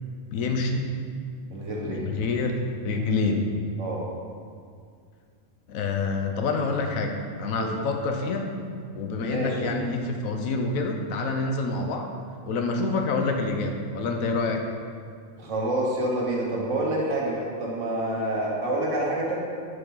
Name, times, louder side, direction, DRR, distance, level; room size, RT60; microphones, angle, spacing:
voice 1, 0.3-0.9 1.8-3.5 5.7-8.5 8.9-12.1 12.5-14.6, left 3 dB, 90° left, 4 dB, 1.2 m, -27 dB
voice 2, 1.5-2.0 3.8-4.0 7.6-7.8 9.2-9.6 15.4-19.4, right 1 dB, 65° right, -3 dB, 1.7 m, -27 dB
7.0 x 6.6 x 3.8 m, 2.2 s
omnidirectional pair, 1.4 m